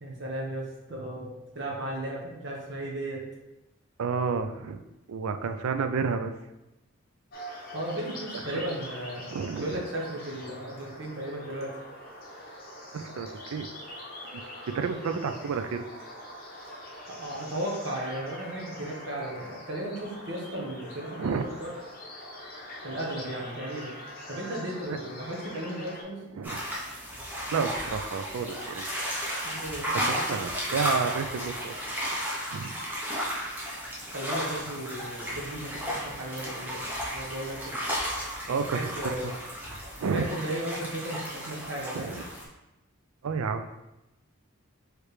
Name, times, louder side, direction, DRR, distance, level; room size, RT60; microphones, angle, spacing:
voice 1, 0.0-3.2 7.7-9.3 9.6-11.8 17.1-21.7 22.8-23.9 24.3-26.2 29.4-30.4 34.1-36.8 37.1-37.8 38.5-39.3 40.0-42.2, right 1 dB, 55° right, -2 dB, 0.9 m, -35 dB
voice 2, 4.0-4.8 5.1-6.3 9.3-9.8 12.9-13.7 14.3-14.4 14.7-15.9 21.2-21.4 24.9-25.0 26.3-26.6 27.5-28.9 29.5-29.6 30.0-31.8 32.5-32.7 38.5-39.3 40.0-40.3 41.9-42.1 43.2-43.7, right 5 dB, 80° right, 8 dB, 0.4 m, -30 dB
sound 1, 7.3-26.0, left 1 dB, 40° left, 0.8 m, -43 dB
sound 2, 26.4-42.4, equal, 10° right, 0.7 m, -34 dB
4.8 x 3.2 x 3.1 m, 0.97 s
head